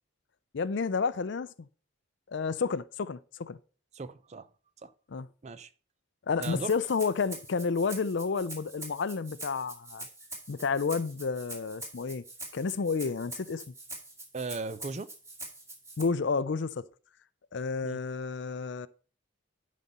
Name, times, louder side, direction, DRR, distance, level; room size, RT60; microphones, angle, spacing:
voice 1, 0.5-1.7 2.3-3.6 5.1-5.3 6.3-10.1 10.5-12.2 12.5-13.6 16.0-16.8 17.5-18.9, left 5 dB, 60° left, 0.5 m, -30 dB
voice 2, 3.9-4.5 4.8-4.9 5.4-5.7 6.4-6.7 14.3-15.1 17.8-18.0, right 3 dB, 35° right, 0.5 m, -37 dB
Rattle (instrument), 6.4-16.0, right 2 dB, 15° right, 2.2 m, -44 dB
11.0 x 4.2 x 5.4 m
head